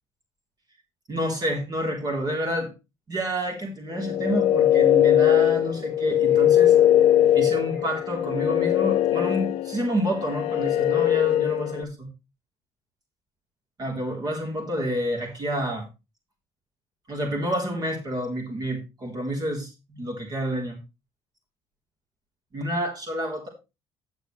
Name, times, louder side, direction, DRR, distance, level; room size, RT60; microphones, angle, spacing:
voice 1, 1.1-2.7 3.1-6.9 7.3-12.1 13.8-15.9 17.1-20.8 22.5-23.5, equal, 35° right, 1 dB, 3.7 m, -29 dB
sound 1, 4.0-11.8, left 11 dB, 70° left, 0.6 m, -21 dB
11.0 x 8.4 x 3.3 m, 0.26 s
cardioid pair, 95°, 11 cm